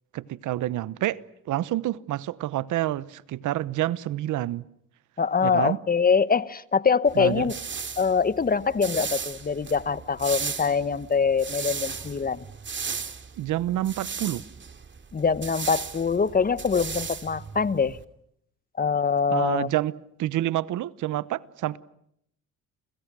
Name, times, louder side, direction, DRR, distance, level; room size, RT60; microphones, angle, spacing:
voice 1, 0.1-4.7 5.4-5.8 7.2-7.5 13.4-14.4 19.3-19.9 20.2-21.8, right 14 dB, 80° right, 1.0 m, -28 dB
voice 2, 5.2-7.6 8.0-12.4 15.1-18.0 18.8-19.7, left 5 dB, 30° left, 1.1 m, -24 dB
sound 1, 7.1-18.0, right 6 dB, 40° right, 2.8 m, -36 dB
30.0 x 27.5 x 6.2 m
cardioid pair, 90°, 30 cm